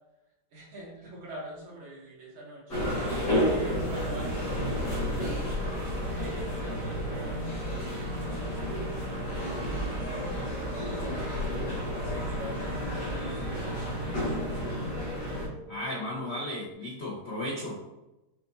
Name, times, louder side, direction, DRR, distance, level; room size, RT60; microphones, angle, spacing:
voice 1, 0.5-5.5 6.1-11.5 12.0-14.4, right 1 dB, 75° right, -4 dB, 2.1 m, -45 dB
sound 1, 2.7-15.5, equal, 55° left, 1.6 m, -31 dB
sound 2, 2.9-16.7, equal, 45° right, 1.4 m, -48 dB
voice 2, 15.7-17.8, left 1 dB, 80° left, -6 dB, 0.5 m, -35 dB
5.9 x 2.8 x 2.7 m, 1.0 s
omnidirectional pair, 2.4 m